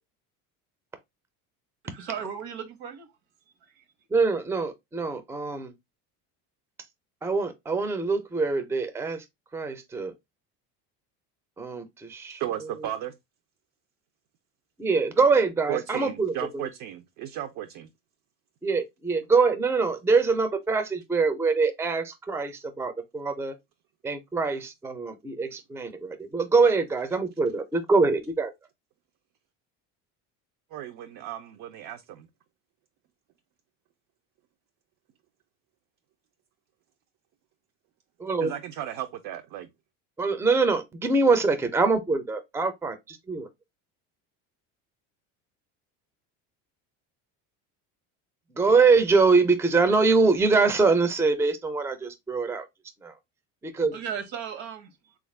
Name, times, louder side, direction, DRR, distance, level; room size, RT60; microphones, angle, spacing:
voice 1, 1.8-3.1 3.7-3.8 53.9-55.2, right 7 dB, 75° right, 1.1 m, -36 dB
voice 2, 4.1-5.7 7.2-9.2 9.5-10.1 11.6-12.4 14.8-16.3 18.6-23.5 24.0-28.5 38.2-38.5 40.2-43.5 48.6-52.7 53.0-53.1 53.6-53.9, right 4 dB, 5° right, 0.4 m, -24 dB
voice 3, 12.4-13.2 15.7-17.9 30.7-32.3 38.4-39.7, right 12 dB, 55° right, 0.5 m, -35 dB
3.3 x 2.5 x 3.1 m
supercardioid pair, 100°, 38 cm